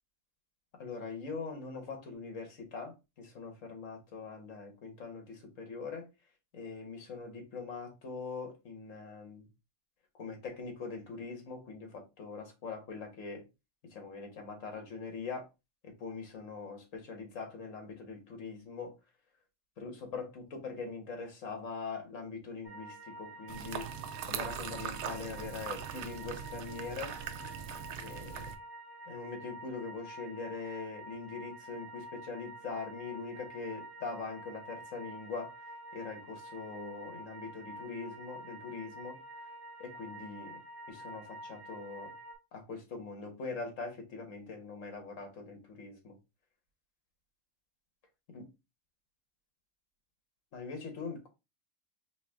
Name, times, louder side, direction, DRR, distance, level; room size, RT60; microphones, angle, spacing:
voice 1, 0.7-6.1 6.5-9.5 10.1-13.5 13.8-15.5 15.8-18.9 19.8-23.9 24.2-27.1 28.0-28.4 29.1-35.5 35.9-39.2 39.8-40.6 40.9-42.1 42.5-46.2 48.3-48.4 50.5-51.3, left 4 dB, 70° left, 1.7 m, -42 dB
sound 1, 22.6-42.3, right 1 dB, 55° right, 1.5 m, -48 dB
sound 2, 23.5-28.5, right 8 dB, 85° right, 1.0 m, -41 dB
4.1 x 3.0 x 3.5 m
omnidirectional pair, 1.4 m